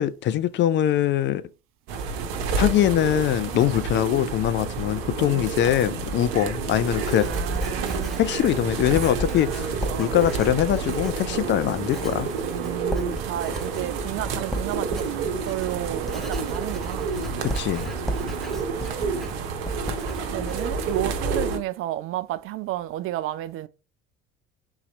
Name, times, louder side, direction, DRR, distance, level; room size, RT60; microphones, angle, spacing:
voice 1, 0.0-1.4 2.6-7.3 8.2-12.3 17.4-17.9, left 11 dB, 35° left, 0.4 m, -23 dB
sound 1, 1.9-21.6, right 5 dB, 65° right, 0.9 m, -29 dB
voice 2, 5.2-5.5 7.2-8.2 9.3-10.1 11.3-11.6 12.5-17.1 18.2-18.6 19.3-19.6 20.3-23.7, right 14 dB, 45° right, 0.4 m, -33 dB
Writing, 6.2-21.6, right 1 dB, ahead, 0.9 m, -35 dB
3.9 x 2.8 x 4.1 m
hypercardioid pair, 60°, 32 cm